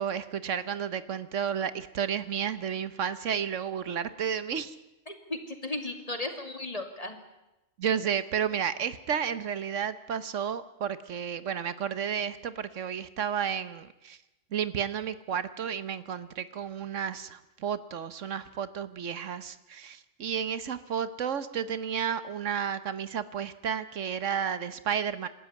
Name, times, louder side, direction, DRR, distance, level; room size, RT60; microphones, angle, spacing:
voice 1, 0.0-4.7 7.8-14.2 14.5-25.3, right 8 dB, 70° right, 14 dB, 1.3 m, -32 dB
voice 2, 5.1-7.2, left 2 dB, 30° left, 6 dB, 2.6 m, -35 dB
27.0 x 13.0 x 9.4 m, 0.97 s
omnidirectional pair, 1.3 m